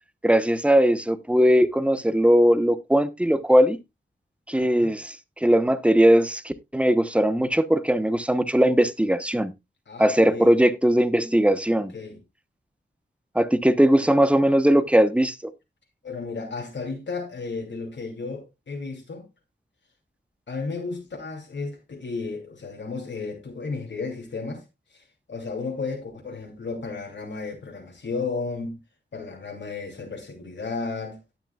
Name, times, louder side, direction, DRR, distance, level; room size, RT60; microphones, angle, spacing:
voice 1, 0.2-3.8 4.5-9.5 10.0-11.9 13.3-15.5, equal, 5° right, 0.9 m, -20 dB
voice 2, 4.5-5.0 9.9-10.5 11.7-12.2 16.0-19.3 20.5-24.6 24.9-28.8 29.1-31.2, left 4 dB, 70° left, 3.0 m, -33 dB
18.0 x 6.1 x 2.3 m
wide cardioid pair, 90°, 19 cm